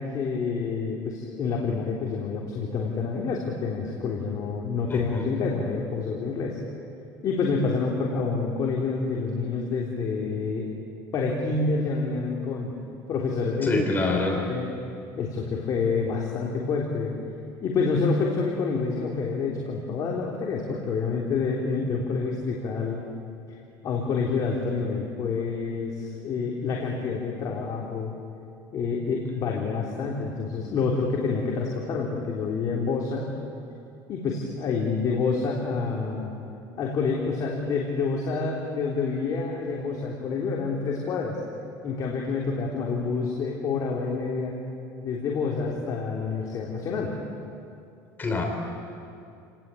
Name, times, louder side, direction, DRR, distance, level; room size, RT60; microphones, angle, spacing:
voice 1, 0.0-6.6 7.2-10.7 11.1-12.7 13.1-13.8 14.1-14.2 14.5-14.7 15.2-17.1 17.6-23.0 23.5-23.6 23.8-28.1 28.7-33.3 34.1-36.3 36.8-41.4 41.8-44.5 45.0-47.1, left 4 dB, 40° left, -2 dB, 3.6 m, -28 dB
voice 2, 4.9-5.2 13.6-14.4 48.2-48.5, left 3 dB, 20° left, 2 dB, 3.6 m, -25 dB
30.0 x 19.0 x 8.6 m, 2.5 s
cardioid pair, 135°, 9 cm